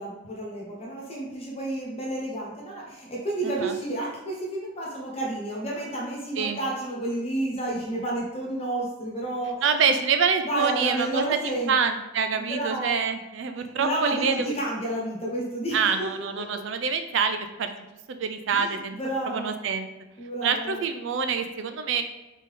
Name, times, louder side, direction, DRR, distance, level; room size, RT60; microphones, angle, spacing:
voice 1, 0.0-9.6 10.4-11.7 12.3-13.0 13.6-16.3 18.5-19.5 20.2-20.8, right 1 dB, 30° left, -3 dB, 1.2 m, -31 dB
voice 2, 9.6-14.4 15.7-17.7 18.1-19.0 19.3-19.9 20.4-22.0, right 6 dB, 60° right, 8 dB, 0.4 m, -26 dB
4.1 x 3.6 x 3.5 m, 1.0 s
head